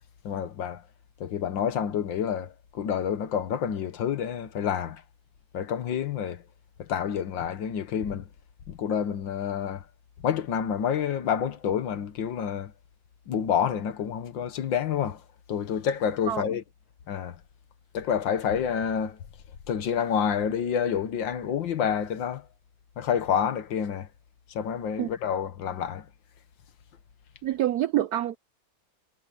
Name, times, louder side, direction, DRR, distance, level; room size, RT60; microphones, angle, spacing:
voice 1, 0.2-0.8 1.2-5.0 5.5-6.4 6.8-8.3 8.7-9.8 10.2-12.7 13.3-15.2 15.5-16.6 17.1-17.4 17.9-19.2 19.7-22.4 23.0-24.1 24.6-26.1, left 8 dB, 70° left, 1.8 m, -28 dB
voice 2, 27.4-28.4, right 13 dB, 70° right, 0.9 m, -26 dB
omnidirectional pair, 2.2 m